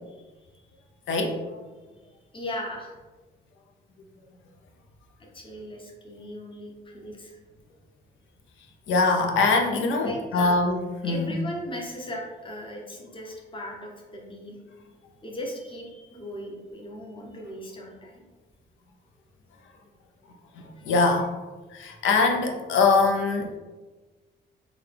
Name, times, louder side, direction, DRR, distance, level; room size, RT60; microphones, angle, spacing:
voice 1, 1.1-1.6 8.9-10.8 11.0-11.3 20.6-21.3 21.7-23.5, left 3 dB, 75° left, 3 dB, 0.6 m, -23 dB
voice 2, 2.3-3.0 5.3-7.4 10.0-10.6 11.0-14.6 15.2-18.2 20.7-20.9, equal, 25° left, -1 dB, 0.8 m, -38 dB
3.8 x 2.3 x 3.3 m, 1.3 s
cardioid pair, 90°, 20 cm